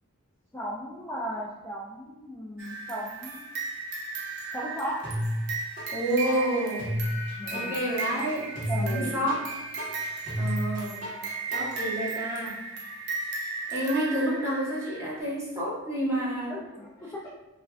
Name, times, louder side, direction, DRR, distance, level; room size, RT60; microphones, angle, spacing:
voice 1, 0.5-3.5 4.5-5.0 6.9-7.0 7.3-7.8 8.1-9.2 16.5-17.3, equal, 10° left, -7 dB, 0.4 m, -36 dB
sound 1, 2.6-15.2, right 3 dB, 55° right, 0.7 m, -36 dB
sound 2, 5.0-5.9 6.3-11.9, equal, 35° right, 1.4 m, -32 dB
voice 2, 5.9-6.9 7.5-8.4 8.7-9.4 10.4-11.0 11.5-12.5 13.7-16.5, right 1 dB, 15° right, -8 dB, 1.1 m, -29 dB
5.4 x 2.4 x 2.4 m, 1.0 s
head